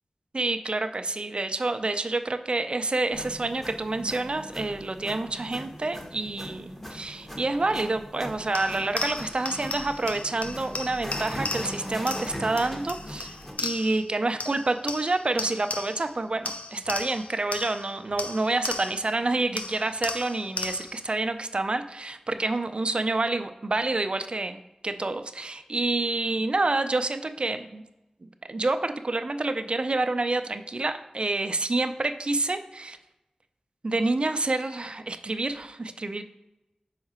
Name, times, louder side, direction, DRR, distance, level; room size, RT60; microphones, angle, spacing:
voice 1, 0.3-27.8 28.2-33.0 33.8-36.2, right 2 dB, 50° right, 9 dB, 0.4 m, -28 dB
sound 1, 3.1-13.5, equal, 15° left, 1.6 m, -39 dB
sound 2, 8.5-14.1 14.4-16.1 16.5-19.1 19.6-21.1, left 3 dB, 80° left, 0.4 m, -36 dB
5.7 x 4.7 x 4.3 m, 0.97 s
wide cardioid pair, 50°, 2 cm